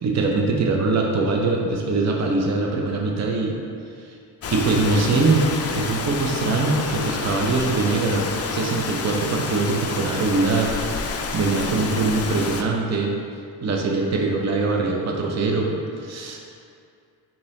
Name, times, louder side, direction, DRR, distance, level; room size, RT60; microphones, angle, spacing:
voice 1, 0.0-3.6 4.0-4.2 4.5-13.1 13.6-16.5, right 3 dB, 40° right, 0 dB, 0.6 m, -23 dB
Rain, 4.4-12.6, left 4 dB, 35° left, 0.4 m, -29 dB
3.9 x 2.9 x 3.7 m, 2.4 s
cardioid pair, 55°, 44 cm